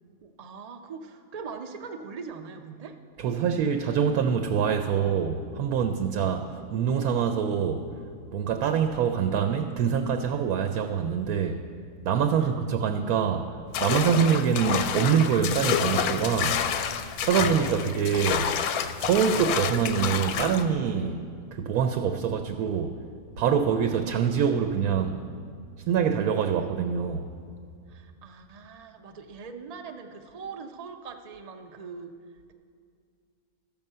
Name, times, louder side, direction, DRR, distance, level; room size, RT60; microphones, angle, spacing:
voice 1, 0.2-3.0 12.4-12.5 17.5-18.2 23.9-24.5 27.9-32.1, right 5 dB, 60° right, 6 dB, 0.4 m, -42 dB
voice 2, 3.2-7.9 8.3-11.6 12.0-16.6 17.2-18.5 19.0-21.2 21.5-23.0 23.4-25.2 25.9-27.3, right 7 dB, 80° right, 7 dB, 1.1 m, -25 dB
sound 1, 13.7-20.6, left 8 dB, 85° left, 1.1 m, -28 dB
13.5 x 7.2 x 5.5 m, 2.2 s
omnidirectional pair, 1.6 m